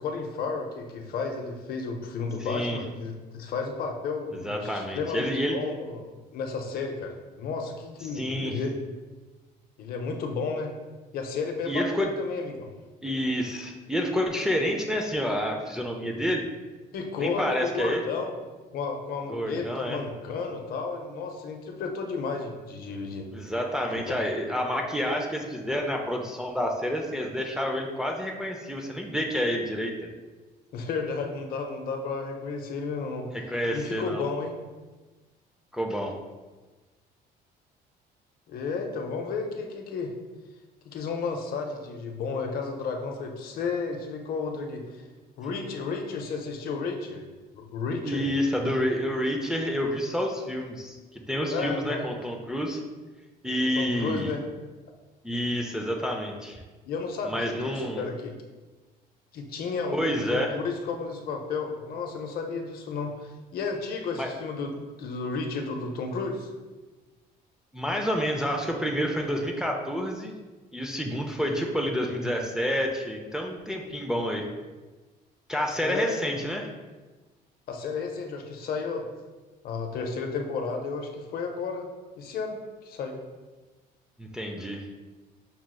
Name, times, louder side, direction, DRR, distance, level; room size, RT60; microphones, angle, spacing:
voice 1, 0.0-6.0 6.3-8.8 9.8-10.7 11.1-12.7 16.9-18.3 18.7-23.3 23.9-24.2 30.7-33.3 33.7-34.6 38.5-40.1 40.8-45.0 45.4-47.2 47.5-48.3 51.5-52.2 53.8-54.4 56.9-58.3 59.3-66.5 75.8-76.2 77.7-79.1 79.6-81.9 82.2-83.2, left 4 dB, 65° left, 3 dB, 0.6 m, -32 dB
voice 2, 2.4-2.8 4.3-5.6 8.1-8.6 11.7-12.1 13.0-16.4 17.2-18.0 19.3-20.0 23.3-29.9 33.3-34.2 35.7-36.1 48.0-52.8 53.4-54.4 55.2-56.6 57.2-58.0 59.9-60.5 64.2-64.3 67.7-70.3 70.7-74.4 75.5-76.7 84.2-84.9, equal, 5° right, 1 dB, 0.4 m, -29 dB
5.4 x 3.0 x 2.2 m, 1.2 s
cardioid pair, 110°, 17 cm